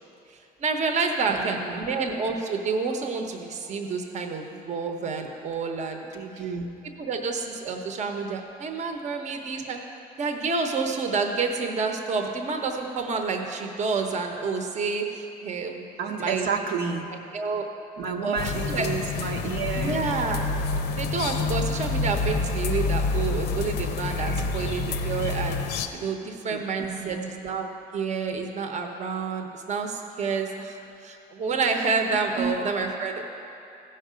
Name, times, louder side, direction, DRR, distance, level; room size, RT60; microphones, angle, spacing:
voice 1, 0.6-6.0 7.0-9.8 10.2-15.8 16.2-16.5 17.3-17.7 18.2-18.9 19.8-20.4 21.0-33.2, right 4 dB, 45° right, 4 dB, 0.9 m, -29 dB
voice 2, 1.3-1.8 6.1-6.7 16.0-17.1 18.0-20.1 26.5-26.6 26.9-27.3 32.4-32.6, right 5 dB, 75° right, 1 dB, 0.9 m, -31 dB
sound 1, 18.4-25.9, left 3 dB, 85° left, 0.7 m, -28 dB
15.0 x 5.6 x 5.1 m, 2.9 s
cardioid pair, 110°, 17 cm